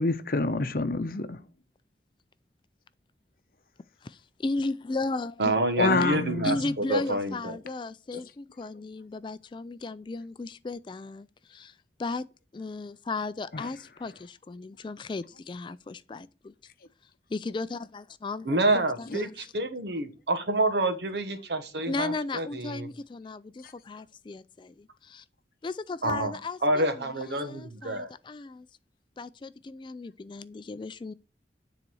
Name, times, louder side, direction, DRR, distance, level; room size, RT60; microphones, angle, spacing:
voice 1, 0.0-1.4 5.8-6.8 13.5-13.7 19.1-19.2, left 3 dB, 55° left, 0.7 m, -27 dB
voice 2, 4.0-5.5 6.4-11.7 12.0-12.2 12.5-16.5 17.3-19.3 21.9-25.2 25.6-28.7 29.2-31.1, left 3 dB, 25° left, 0.3 m, -35 dB
voice 3, 5.4-7.6 18.4-22.9 26.0-26.3 26.6-28.1, right 2 dB, 75° right, 1.3 m, -28 dB
9.7 x 4.1 x 6.2 m
head